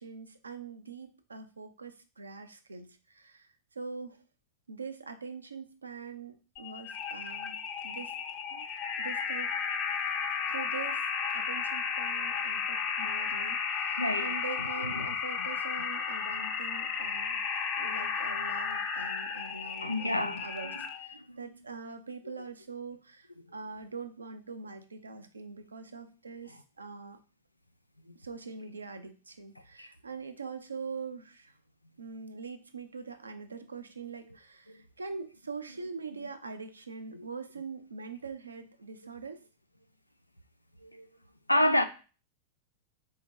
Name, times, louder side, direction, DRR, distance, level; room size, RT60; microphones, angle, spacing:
voice 1, 0.0-4.2 4.7-8.1 8.5-8.7 9.0-9.5 10.5-11.1 11.3-27.2 28.1-31.6 32.0-39.4, right 4 dB, 75° right, 0.5 m, -43 dB
sound 1, 6.6-21.1, left 6 dB, 35° left, 0.8 m, -33 dB
voice 2, 14.0-14.4 15.0-15.1 15.4-15.5 19.8-20.7 21.3-21.4 23.5-23.6 28.1-28.2 29.8-29.9 34.7-34.8 37.1-37.3 40.8-41.1 41.5-41.8, left 1 dB, 85° left, 0.4 m, -29 dB
4.2 x 2.8 x 4.5 m
figure-of-eight pair, 90°, 0 cm